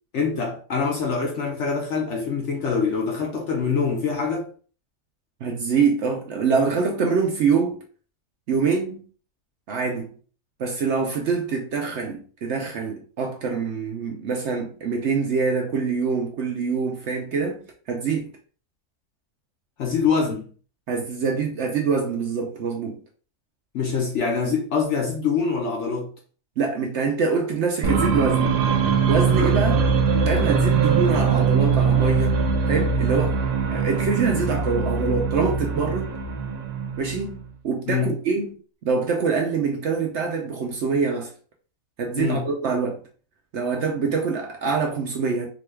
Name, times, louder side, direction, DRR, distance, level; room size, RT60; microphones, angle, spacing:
voice 1, 0.1-4.5 19.8-20.5 23.7-26.1 37.9-38.1 42.2-42.4, left 5 dB, 60° left, 0.8 m, -24 dB
voice 2, 5.4-7.8 8.5-9.1 9.7-10.1 10.6-18.3 20.9-23.0 26.6-28.5 29.1-29.8 30.3-32.4 32.7-33.4 33.7-36.1 37.0-41.3 42.0-43.0 43.5-45.5, right 5 dB, 65° right, 0.7 m, -25 dB
sound 1, 27.8-37.4, right 5 dB, 90° right, 1.2 m, -22 dB
3.8 x 2.2 x 3.2 m
omnidirectional pair, 1.7 m